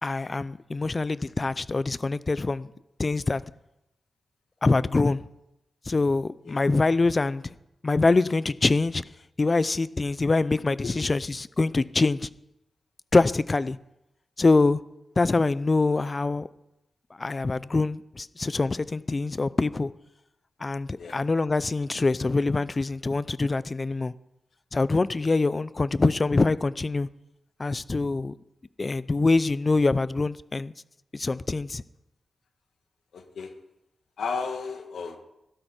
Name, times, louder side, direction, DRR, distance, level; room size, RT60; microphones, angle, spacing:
voice 1, 0.0-2.7 3.0-3.4 4.6-5.3 5.9-7.4 7.8-9.0 9.4-12.3 13.1-13.8 14.4-14.8 15.2-16.5 17.2-19.9 20.6-24.1 24.7-27.1 27.6-28.3 28.8-30.7 31.1-31.8, left 3 dB, 35° left, 0.5 m, -24 dB
voice 2, 33.1-33.6 34.2-35.2, left 5 dB, 85° left, 1.8 m, -34 dB
16.0 x 13.0 x 4.4 m
wide cardioid pair, 95°, 0 cm